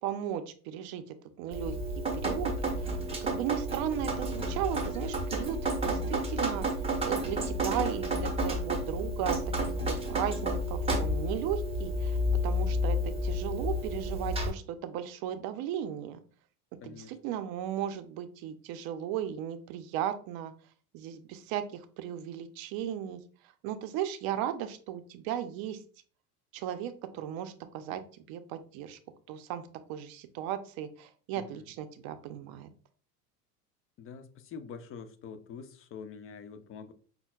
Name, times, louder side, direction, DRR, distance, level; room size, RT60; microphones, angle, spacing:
voice 1, 0.0-1.8 2.1-6.7 7.1-9.4 9.9-12.2 12.4-16.2 16.8-20.5 20.9-23.2 23.6-25.8 26.5-28.0 28.3-29.0 29.3-32.7, right 10 dB, 50° right, 0.6 m, -36 dB
Drip, 1.5-14.5, equal, 10° right, 0.8 m, -31 dB
voice 2, 16.8-17.1 27.9-28.0 31.4-31.7 34.0-36.9, left 6 dB, 30° left, 0.4 m, -45 dB
5.5 x 2.2 x 2.3 m
hypercardioid pair, 90°, 47 cm